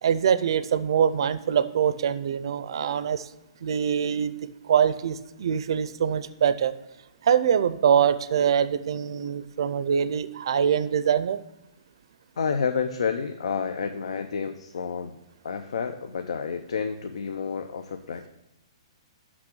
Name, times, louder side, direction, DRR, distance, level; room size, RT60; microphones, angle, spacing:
voice 1, 0.0-3.3 3.6-4.3 4.7-6.7 7.2-11.4, right 8 dB, 50° right, 13 dB, 0.4 m, -24 dB
voice 2, 12.4-15.1 15.4-18.3, left 6 dB, 90° left, 7 dB, 0.6 m, -30 dB
6.1 x 5.9 x 6.0 m, 0.97 s
hypercardioid pair, 175°, 3 cm